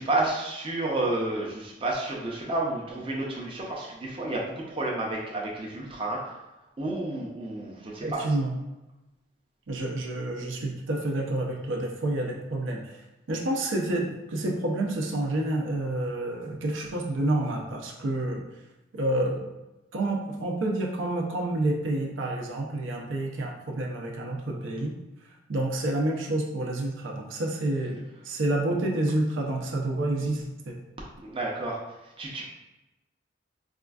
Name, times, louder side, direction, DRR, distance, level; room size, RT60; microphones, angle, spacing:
voice 1, 0.0-6.3 6.8-8.2 31.2-31.8 32.2-32.4, right 2 dB, 30° right, -3 dB, 0.5 m, -30 dB
voice 2, 8.0-8.5 9.7-12.9 13.3-18.4 18.9-19.5 19.9-25.0 25.5-30.8, right 1 dB, 85° right, -1 dB, 0.6 m, -29 dB
4.3 x 2.4 x 2.3 m, 1.0 s
head